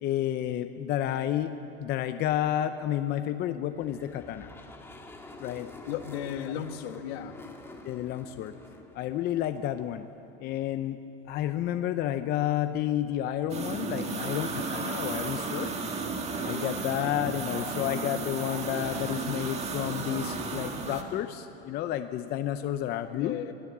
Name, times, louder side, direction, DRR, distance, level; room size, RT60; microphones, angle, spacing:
voice 1, 0.0-1.5 1.8-4.5 5.4-5.7 7.8-8.5 8.9-10.1 10.4-11.0 11.3-15.7 16.4-23.4, left 12 dB, 30° left, 9 dB, 0.6 m, -30 dB
sound 1, 3.7-10.1, left 2 dB, 5° left, 1.6 m, -48 dB
voice 2, 5.9-7.4 23.1-23.5, left 10 dB, 65° left, 7 dB, 1.7 m, -35 dB
sound 2, 13.5-21.0, right 4 dB, 20° right, 1.8 m, -33 dB
24.5 x 17.0 x 7.3 m, 2.9 s
supercardioid pair, 145°, 32 cm